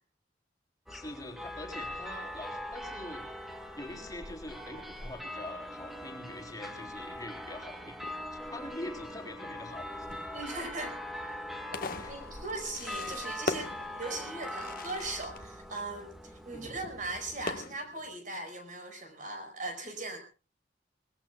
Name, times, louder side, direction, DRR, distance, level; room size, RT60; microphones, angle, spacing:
voice 1, 0.9-3.3 3.8-10.1 12.0-12.1 16.5-16.8, left 2 dB, 20° left, 2 dB, 3.7 m, -44 dB
sound 1, 0.9-17.5, left 1 dB, ahead, 1.7 m, -42 dB
Fireworks, 3.1-18.1, left 3 dB, 55° left, 1.4 m, -44 dB
voice 2, 10.3-11.0 12.1-20.2, right 2 dB, 45° right, 6 dB, 5.2 m, -39 dB
24.0 x 20.5 x 2.3 m, 0.34 s
head